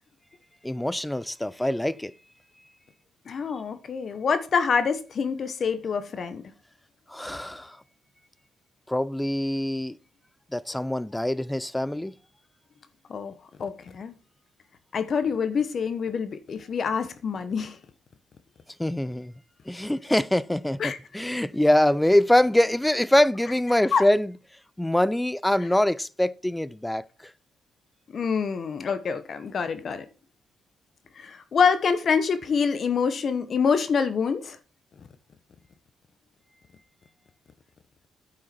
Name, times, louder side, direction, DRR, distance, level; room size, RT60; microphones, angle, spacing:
voice 1, 0.6-2.1 7.1-7.8 8.9-10.0 10.5-12.1 18.8-19.3 19.7-24.3 24.8-27.3, left 1 dB, 5° left, 0.5 m, -24 dB
voice 2, 3.3-6.4 13.1-13.3 13.6-14.2 14.9-17.8 20.8-21.0 23.9-24.0 28.1-30.1 31.2-34.6, left 6 dB, 50° left, 1.1 m, -26 dB
9.3 x 7.6 x 4.4 m
cardioid pair, 90°, 0 cm